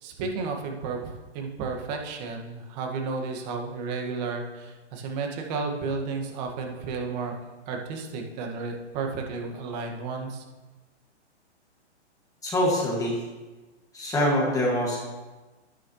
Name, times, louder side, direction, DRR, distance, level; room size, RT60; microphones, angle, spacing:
voice 1, 0.0-7.4 7.7-10.4, right 4 dB, 35° right, 2 dB, 2.0 m, -32 dB
voice 2, 12.4-13.2 13.9-15.0, left 1 dB, 10° left, -4 dB, 2.2 m, -24 dB
10.5 x 10.5 x 3.3 m, 1.2 s
hypercardioid pair, 140°, 35 cm